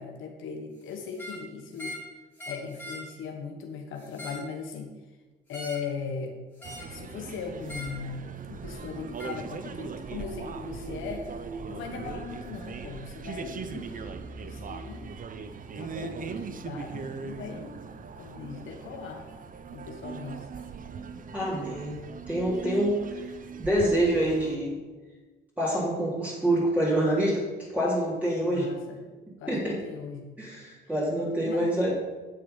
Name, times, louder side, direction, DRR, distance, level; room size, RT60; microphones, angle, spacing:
voice 1, 0.0-2.0 2.5-4.9 5.5-6.4 6.9-11.3 11.7-14.2 14.4-15.1 15.7-17.8 18.1-19.2 19.7-20.7 28.4-29.0 29.4-30.4 31.4-31.6, left 5 dB, 80° left, 3 dB, 1.3 m, -39 dB
sound 1, 1.1-1.4 1.8-2.1 2.4-3.1 4.0-4.5 5.5-5.9 6.6-7.0 7.6-8.0 9.2-9.4, left 1 dB, 10° left, 3.5 m, -41 dB
sound 2, 6.6-24.5, right 5 dB, 45° right, 0.8 m, -40 dB
voice 2, 21.3-22.0 22.3-23.3 23.6-24.7 25.6-27.4 27.7-28.7 29.5-29.8 30.4-31.9, right 1 dB, 10° right, -7 dB, 3.7 m, -26 dB
10.0 x 7.2 x 5.5 m, 1.3 s
cardioid pair, 90°, 20 cm